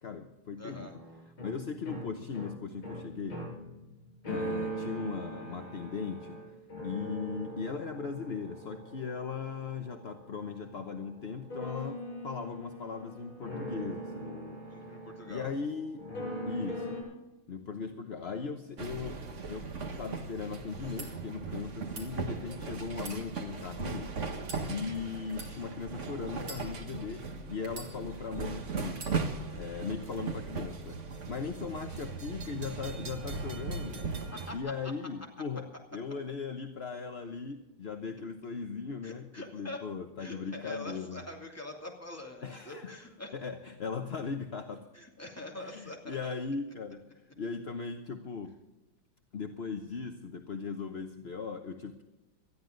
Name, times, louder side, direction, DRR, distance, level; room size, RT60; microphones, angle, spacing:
voice 1, 0.0-3.4 4.2-6.4 6.8-14.6 15.3-16.0 16.5-17.0 17.5-19.2 19.5-19.7 20.0-24.1 24.7-29.1 29.5-31.0 31.3-34.0 34.5-41.3 42.4-43.0 43.3-44.9 45.5-48.6 49.3-52.0, left 5 dB, 45° left, 5 dB, 0.8 m, -38 dB
sound 1, 0.6-17.0, equal, 75° left, 7.1 m, -41 dB
voice 2, 0.6-0.9 14.7-15.5 34.5-34.7 39.0-39.8 40.2-43.3 44.9-46.3, left 2 dB, 5° left, 0 dB, 2.7 m, -44 dB
sound 2, 18.8-34.6, right 4 dB, 40° right, 1.5 m, -38 dB
sound 3, 20.8-21.1 21.8-22.1 22.9-23.8 24.4-24.7 25.3-25.5 26.4-27.1 27.6-28.3 28.9-29.2, right 3 dB, 70° right, 3.9 m, -46 dB
20.0 x 13.5 x 3.9 m, 1.0 s
omnidirectional pair, 2.3 m